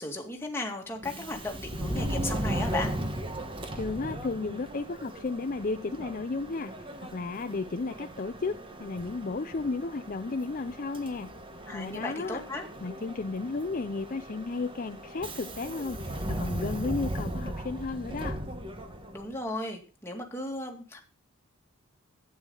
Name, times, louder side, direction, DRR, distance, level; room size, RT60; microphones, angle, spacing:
voice 1, 0.0-2.9 11.7-12.7 19.1-21.0, left 2 dB, 10° left, 1 dB, 2.1 m, -35 dB
Subway metro underground, 1.0-19.3, right 1 dB, 25° right, 1.3 m, -37 dB
voice 2, 3.7-6.7 7.0-11.3 11.7-12.4 12.8-18.4, left 3 dB, 40° left, 9 dB, 0.5 m, -33 dB
12.0 x 9.2 x 3.9 m, 0.39 s
head